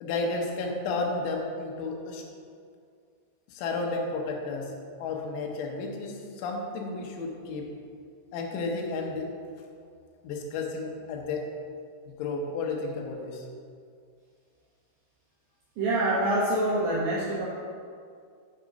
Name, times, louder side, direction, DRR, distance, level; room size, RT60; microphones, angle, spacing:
voice 1, 0.0-2.2 3.5-4.7 5.0-7.7 8.3-9.3 10.2-11.5 12.1-13.5, left 3 dB, 85° left, 1 dB, 3.2 m, -32 dB
voice 2, 15.8-17.5, right 1 dB, 80° right, -6 dB, 2.1 m, -25 dB
8.5 x 3.6 x 5.0 m, 2.2 s
omnidirectional pair, 5.3 m